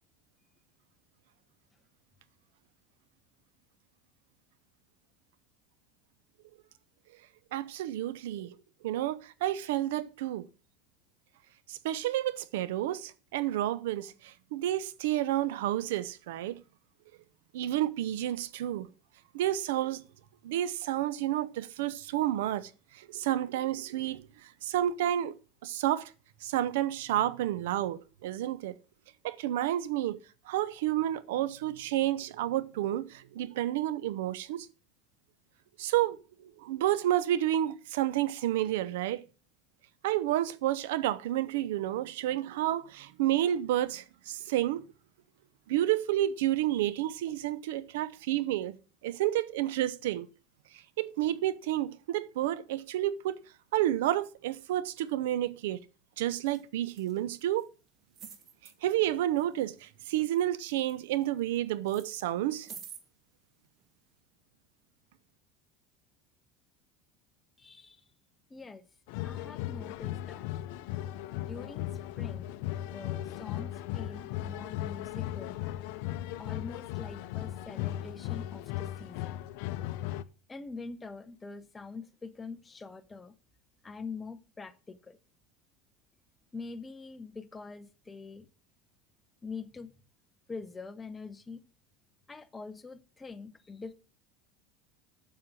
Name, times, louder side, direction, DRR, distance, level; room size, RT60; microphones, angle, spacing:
voice 1, 7.5-8.5 8.8-10.5 11.7-16.6 17.5-18.9 19.3-20.0 20.4-22.7 22.9-25.3 25.6-26.1 26.4-28.7 29.2-30.2 30.5-34.7 35.8-36.2 36.6-39.2 40.0-44.8 45.7-48.7 49.0-50.3 51.0-53.4 53.7-55.8 56.2-57.7 58.8-62.7, right 13 dB, 85° right, 0.7 m, -30 dB
sound 1, 56.5-56.6 56.9-57.6 58.1-58.7 59.3-59.9 60.1-61.6 61.9-63.0 63.8-63.9, right 7 dB, 45° right, 1.9 m, -49 dB
voice 2, 67.6-68.0 68.5-68.9 69.2-70.5 71.5-71.9 72.2-72.5 72.8-75.6 76.4-79.4 80.5-83.4 83.8-85.2 86.5-88.5 89.4-89.9 90.5-91.6 92.3-93.9, left 4 dB, 15° left, 0.9 m, -44 dB
sound 2, 69.1-80.2, left 13 dB, 70° left, 0.6 m, -37 dB
7.5 x 6.7 x 6.2 m
supercardioid pair, 120°, 0 cm